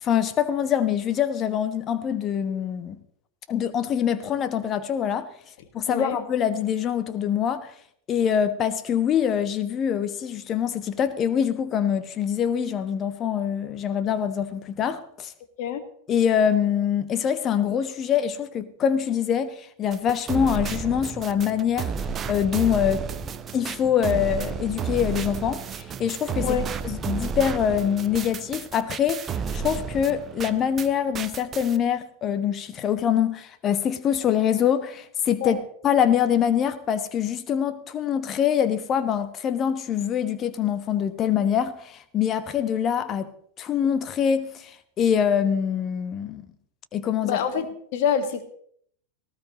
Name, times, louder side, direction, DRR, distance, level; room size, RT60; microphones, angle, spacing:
voice 1, 0.0-2.9 3.5-5.3 5.7-7.7 8.1-15.3 16.1-21.9 22.3-23.0 23.5-26.6 26.8-29.3 29.5-43.3 43.6-46.4 46.9-47.4, left 8 dB, 30° left, 1.3 m, -24 dB
sound 1, 19.9-30.9 31.1-31.8, right 6 dB, 25° right, 0.8 m, -32 dB
voice 2, 47.2-48.4, left 8 dB, 50° left, 1.9 m, -26 dB
19.0 x 16.0 x 3.2 m
figure-of-eight pair, 90°, 0 cm